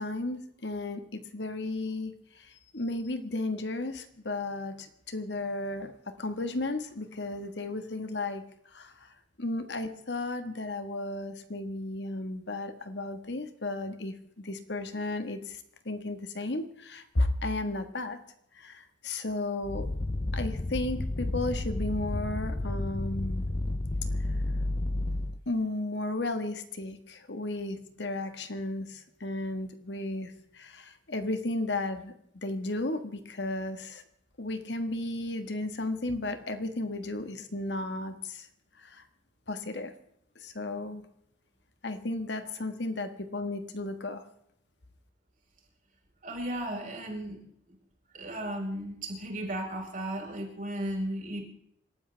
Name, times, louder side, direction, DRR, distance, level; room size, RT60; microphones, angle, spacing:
voice 1, 0.0-5.9 6.2-8.4 8.7-9.1 9.4-18.2 18.5-19.9 20.3-23.4 25.5-34.0 34.4-38.5 38.8-39.0 39.5-39.9 40.4-41.0 41.8-44.2, left 2 dB, 70° left, 8 dB, 1.6 m, -34 dB
sound 1, 19.6-25.4, left 2 dB, 30° left, 0.5 m, -31 dB
voice 2, 46.2-47.4 47.7-47.8 48.1-51.4, right 1 dB, 45° right, 0 dB, 5.1 m, -35 dB
27.0 x 13.0 x 3.4 m, 0.72 s
head